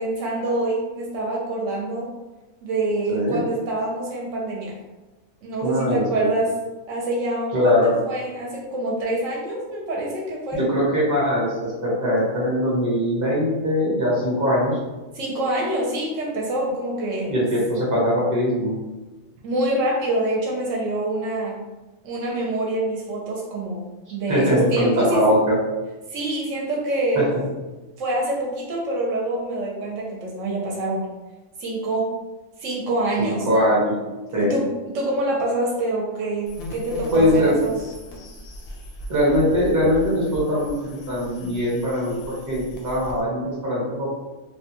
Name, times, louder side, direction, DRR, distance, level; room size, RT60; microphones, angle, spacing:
voice 1, 0.0-2.1 2.6-4.8 5.4-6.5 6.9-7.5 8.1-10.6 15.2-17.3 19.4-21.6 22.0-23.8 24.1-25.2 26.1-27.3 28.0-31.1 31.6-32.1 32.6-33.5 34.3-34.6 34.9-37.7, right 1 dB, 70° right, -3 dB, 0.9 m, -26 dB
voice 2, 3.1-3.4 5.6-6.3 7.5-7.9 10.5-14.8 17.3-18.8 24.3-25.6 27.1-27.3 33.2-34.0 34.3-34.5 36.9-37.6 39.1-44.0, equal, 20° right, -5 dB, 0.7 m, -21 dB
sound 1, 36.5-43.2, equal, 65° left, 0.7 m, -38 dB
2.7 x 2.2 x 2.8 m, 1.2 s
omnidirectional pair, 1.4 m